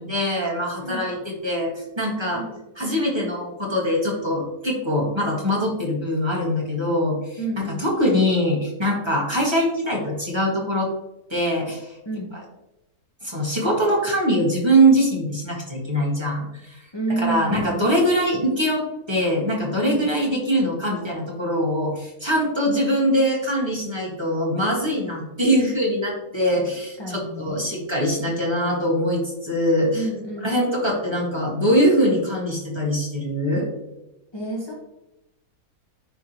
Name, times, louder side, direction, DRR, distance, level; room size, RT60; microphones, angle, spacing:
voice 1, 0.0-2.4 2.8-10.9 11.3-12.0 13.2-16.8 17.1-30.1 30.4-33.7, equal, 20° right, -4 dB, 1.8 m, -22 dB
voice 2, 7.4-7.9 12.0-12.3 16.9-17.9 19.8-20.1 26.5-27.7 29.9-30.6 34.3-34.7, right 2 dB, 20° left, -3 dB, 0.9 m, -30 dB
10.5 x 3.6 x 3.0 m, 0.94 s
omnidirectional pair, 1.6 m